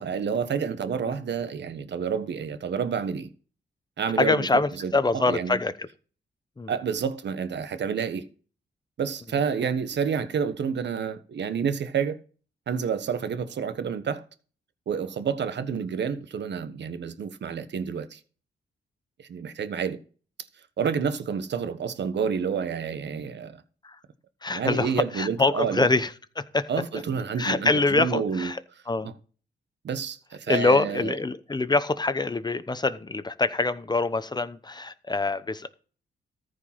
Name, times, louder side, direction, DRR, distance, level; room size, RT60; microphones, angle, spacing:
voice 1, 0.0-3.3 4.0-5.6 6.7-8.3 9.0-12.2 12.7-14.2 14.9-18.2 19.2-20.0 20.8-23.6 24.5-25.9 26.7-28.5 29.0-29.1 29.8-31.2, right 6 dB, 70° right, 1.2 m, -29 dB
voice 2, 4.2-5.7 6.6-6.7 23.8-24.0 24.4-26.1 26.4-26.7 27.4-28.6 28.9-29.1 30.5-35.7, left 3 dB, 20° left, 0.9 m, -25 dB
14.0 x 5.1 x 5.8 m
cardioid pair, 95°, 19 cm